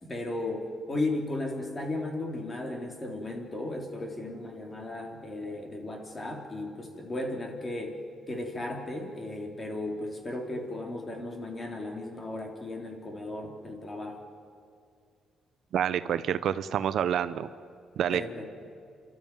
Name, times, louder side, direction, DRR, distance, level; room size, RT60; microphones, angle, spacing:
voice 1, 0.0-8.0 8.3-14.2 18.1-18.5, left 2 dB, 25° left, 2 dB, 3.6 m, -35 dB
voice 2, 15.7-17.5 18.0-18.4, right 9 dB, 70° right, 13 dB, 0.7 m, -28 dB
29.0 x 13.0 x 9.4 m, 2.3 s
cardioid pair, 90°, 0 cm